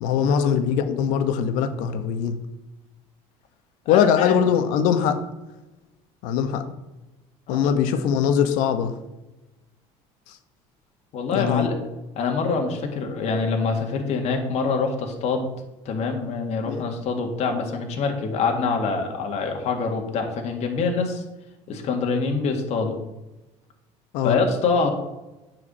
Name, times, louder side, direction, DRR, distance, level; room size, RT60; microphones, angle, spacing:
voice 1, 0.0-2.4 3.9-5.2 6.2-6.6 7.5-8.9 10.3-10.4 11.3-11.7 16.6-16.9 24.1-24.4, left 8 dB, 80° left, 9 dB, 1.2 m, -21 dB
voice 2, 3.9-4.4 7.5-7.7 11.1-11.8 12.2-15.5 15.9-21.2 21.7-23.0 24.2-24.9, left 4 dB, 55° left, 3 dB, 2.0 m, -25 dB
9.6 x 4.9 x 7.4 m, 1.0 s
cardioid pair, 125°, 13 cm